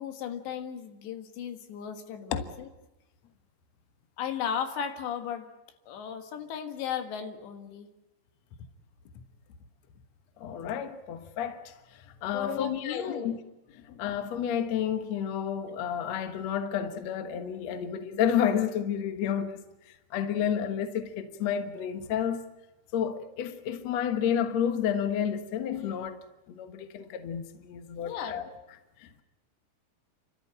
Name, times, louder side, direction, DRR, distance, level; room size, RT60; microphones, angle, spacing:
voice 1, 0.0-2.7 4.2-5.5 5.9-7.9 12.3-13.3 25.7-25.9 28.0-28.4, left 8 dB, 90° left, 3.8 m, -35 dB
voice 2, 10.4-11.7 12.2-13.4 13.7-19.6 20.1-22.4 22.9-28.5 29.0-29.2, left 8 dB, 60° left, 1.8 m, -30 dB
30.0 x 13.5 x 8.9 m
omnidirectional pair, 4.9 m